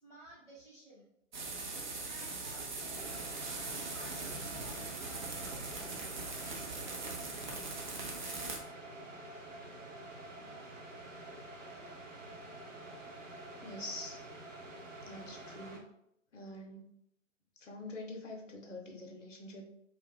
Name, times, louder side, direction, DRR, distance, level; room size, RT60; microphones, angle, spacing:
voice 1, 0.0-1.1 2.0-3.1 3.4-7.4, right 2 dB, 10° left, -11 dB, 0.8 m, -56 dB
sound 1, 1.3-8.6, right 3 dB, 40° right, 0.5 m, -41 dB
sound 2, 3.0-15.8, right 2 dB, 75° right, 0.8 m, -48 dB
voice 2, 13.6-14.2 15.0-15.8 16.3-16.9 17.6-19.6, left 2 dB, 70° left, 2 dB, 0.8 m, -45 dB
2.4 x 2.1 x 3.3 m, 0.77 s
figure-of-eight pair, 125°, 39 cm